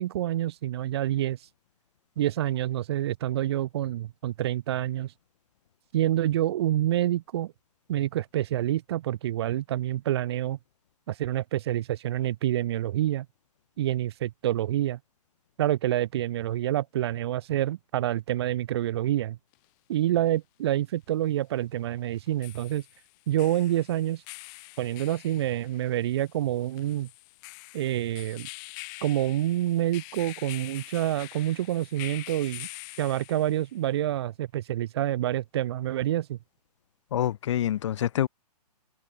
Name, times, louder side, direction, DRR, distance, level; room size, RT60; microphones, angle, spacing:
voice 1, 0.0-1.4 2.2-5.1 5.9-7.5 7.9-10.6 11.1-13.3 13.8-15.0 15.6-19.4 19.9-22.8 23.3-24.2 24.8-27.1 27.7-28.5 29.0-32.7 33.0-36.4, right 13 dB, 40° right, 1.0 m, -27 dB
sound 1, 19.5-19.6 22.1-33.7, left 31 dB, 30° left, 3.5 m, -45 dB
voice 2, 37.1-38.3, left 11 dB, 45° left, 0.7 m, -26 dB
hypercardioid pair, 155°, 21 cm